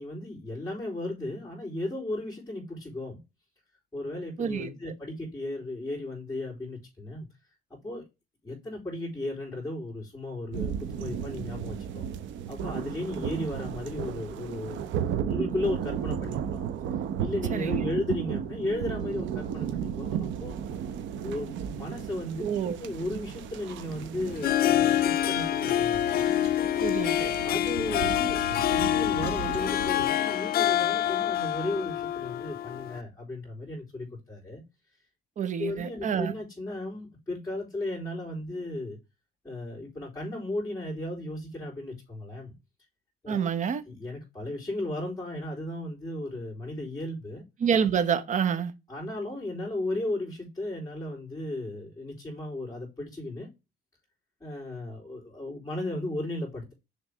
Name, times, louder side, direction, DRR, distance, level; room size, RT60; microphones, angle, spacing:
voice 1, 0.0-3.2 3.9-7.3 7.7-8.0 8.4-12.1 12.5-14.9 15.2-16.7 17.2-20.6 21.2-22.4 22.8-26.3 27.2-34.6 35.6-39.0 39.4-42.5 43.2-43.5 43.9-47.4 48.5-48.6 48.9-53.5 54.4-56.7, left 1 dB, 10° left, 3.6 m, -35 dB
voice 2, 4.4-4.7 17.5-17.7 22.4-22.8 26.8-27.3 35.4-36.3 43.3-43.8 47.6-48.7, right 7 dB, 40° right, 1.0 m, -27 dB
sound 1, 10.5-30.0, right 8 dB, 75° right, 0.9 m, -34 dB
Harp, 24.3-33.0, left 12 dB, 55° left, 0.5 m, -26 dB
6.6 x 3.4 x 5.0 m
cardioid pair, 135°, 19 cm